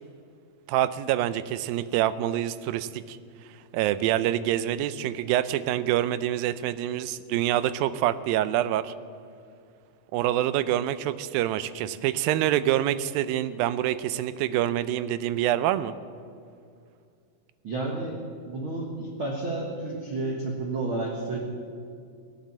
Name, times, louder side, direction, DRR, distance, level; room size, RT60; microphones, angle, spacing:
voice 1, 0.7-3.2 3.7-8.9 10.1-15.9, right 12 dB, 80° right, 15 dB, 2.3 m, -26 dB
voice 2, 17.6-18.2 18.4-21.4, right 2 dB, 50° right, -1 dB, 1.7 m, -31 dB
17.5 x 10.5 x 7.4 m, 2.3 s
omnidirectional pair, 4.3 m